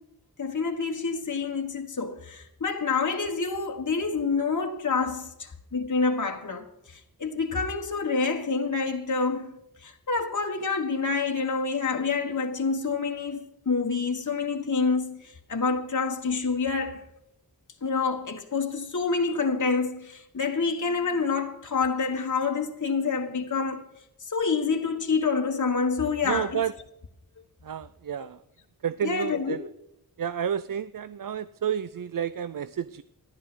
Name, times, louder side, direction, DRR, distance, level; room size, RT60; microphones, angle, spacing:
voice 1, 0.4-9.5 9.8-17.0 17.8-23.8 24.2-26.6 28.2-28.3 29.0-29.6, left 4 dB, 55° left, 1.6 m, -27 dB
voice 2, 26.2-26.7 27.6-28.4 28.8-29.6 30.2-33.0, right 8 dB, 65° right, 0.5 m, -30 dB
14.5 x 12.0 x 6.1 m
wide cardioid pair, 80°, 36 cm